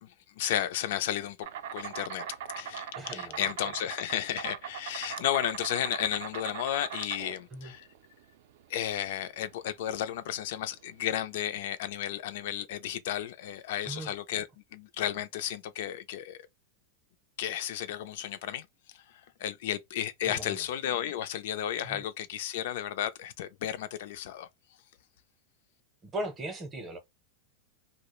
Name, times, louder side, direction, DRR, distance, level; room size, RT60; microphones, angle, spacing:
voice 1, 0.0-2.2 2.6-7.9 8.7-16.5 17.4-18.7 18.9-24.5, left 11 dB, 65° left, 0.3 m, -33 dB
Insect, 1.4-11.4, right 9 dB, 70° right, 0.4 m, -41 dB
voice 2, 2.9-3.4 7.5-7.7 13.9-14.1 20.2-20.6 21.8-22.0 26.1-27.0, right 1 dB, 20° right, 0.7 m, -38 dB
2.3 x 2.0 x 3.0 m
supercardioid pair, 145°, 0 cm